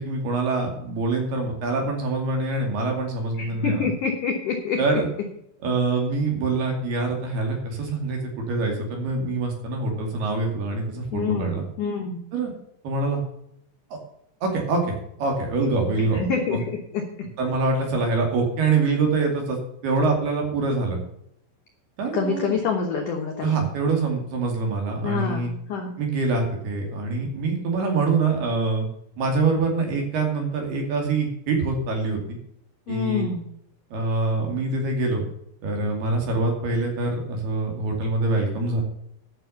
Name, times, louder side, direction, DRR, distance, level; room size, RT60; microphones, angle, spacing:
voice 1, 0.0-3.9 4.8-5.1 5.6-11.6 12.3-12.5 12.8-13.2 13.9-14.0 14.4-16.2 16.5-16.6 17.4-21.0 22.0-22.6 23.4-25.5 26.0-28.9 29.2-32.2 32.9-33.3 33.9-35.2 35.6-38.8, right 3 dB, 60° right, 2 dB, 4.2 m, -25 dB
voice 2, 3.4-4.8 11.1-12.2 16.1-16.6 16.9-17.0 22.1-23.7 25.0-26.0 32.9-33.4, left 5 dB, 70° left, 2 dB, 2.0 m, -26 dB
12.0 x 6.3 x 7.0 m, 0.72 s
omnidirectional pair, 5.6 m